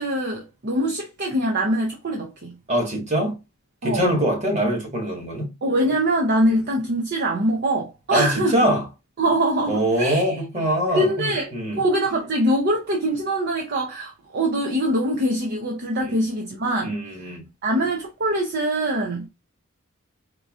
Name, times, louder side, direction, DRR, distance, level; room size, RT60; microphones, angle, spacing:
voice 1, 0.0-2.5 3.8-4.1 5.6-8.6 9.2-10.4 10.9-17.0 17.2-17.3 17.6-19.3, right 1 dB, 50° right, 0.7 m, -23 dB
voice 2, 2.7-3.3 3.8-5.5 8.1-8.8 9.7-11.8 16.0-16.2 16.8-17.4, equal, 35° right, 1.6 m, -23 dB
4.6 x 2.6 x 2.4 m
head